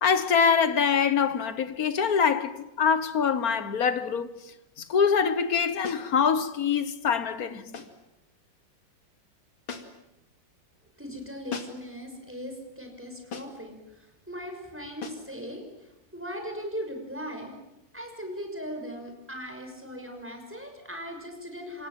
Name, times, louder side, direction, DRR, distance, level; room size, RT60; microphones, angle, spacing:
voice 1, 0.0-4.3 4.8-7.8, left 6 dB, 50° left, 1.7 m, -24 dB
sound 1, 5.8-6.1 7.7-8.0 9.7-10.1 11.5-11.9 13.3-13.7 15.0-15.3, left 5 dB, 85° left, 3.2 m, -39 dB
voice 2, 11.0-17.6 17.9-21.9, equal, 5° right, 6.3 m, -39 dB
28.0 x 26.5 x 7.7 m
omnidirectional pair, 2.1 m